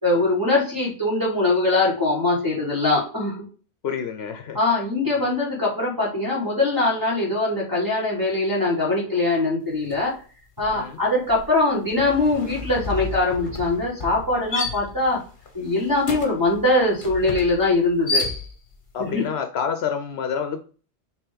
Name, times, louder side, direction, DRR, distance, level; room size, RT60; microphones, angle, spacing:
voice 1, 0.0-3.4 4.5-10.1 10.6-15.2 15.5-18.2 19.0-19.2, left 2 dB, 20° right, -4 dB, 2.8 m, -22 dB
voice 2, 3.8-4.6 10.7-11.0 18.9-20.6, left 7 dB, 70° left, 8 dB, 0.9 m, -28 dB
sound 1, 9.8-10.1 10.4-18.9, left 4 dB, 50° left, 1.4 m, -32 dB
6.9 x 3.7 x 3.9 m, 0.40 s
omnidirectional pair, 1.1 m